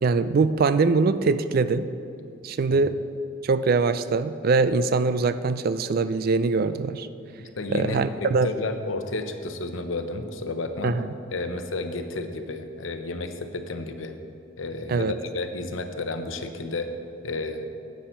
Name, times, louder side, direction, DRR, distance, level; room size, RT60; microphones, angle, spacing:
voice 1, 0.0-1.9 2.4-3.0 3.4-7.1 7.7-8.5 10.8-11.1 14.9-15.1, right 4 dB, 50° right, 13 dB, 0.3 m, -22 dB
voice 2, 7.4-11.0 11.3-14.1 14.6-16.9 17.2-17.7, left 2 dB, 75° left, 7 dB, 0.7 m, -32 dB
9.9 x 8.5 x 4.4 m, 2.6 s
head